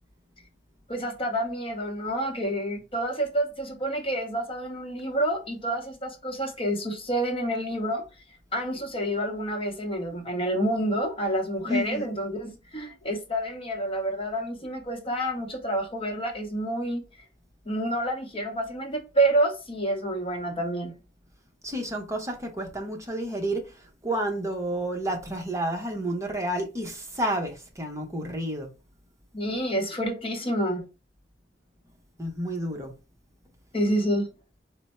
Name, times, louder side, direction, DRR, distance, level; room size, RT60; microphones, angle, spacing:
voice 1, 0.9-8.1 8.5-17.0 17.7-20.9 29.3-30.9 33.7-34.3, right 1 dB, 30° left, 0.9 m, -28 dB
voice 2, 11.6-12.1 21.6-23.7 24.0-28.7 32.2-32.9, right 1 dB, 15° right, 0.8 m, -30 dB
4.3 x 2.1 x 4.2 m
head